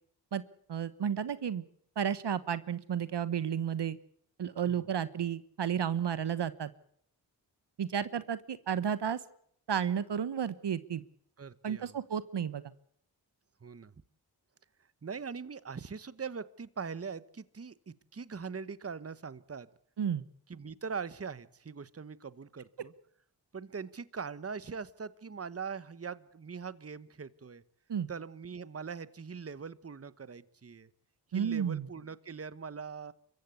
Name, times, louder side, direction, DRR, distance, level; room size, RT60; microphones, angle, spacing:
voice 1, 0.7-1.6 2.0-4.0 4.4-6.7 7.8-9.2 9.7-11.0 11.6-12.7 20.0-20.2 27.9-28.1 31.3-31.9, right 8 dB, 65° right, 16 dB, 1.1 m, -32 dB
voice 2, 11.4-12.0 13.6-13.9 15.0-19.7 20.5-22.9 23.5-27.6 28.1-30.9 31.3-33.1, right 5 dB, 30° right, 17 dB, 1.1 m, -42 dB
25.0 x 15.0 x 8.3 m, 0.66 s
cardioid pair, 50°, 44 cm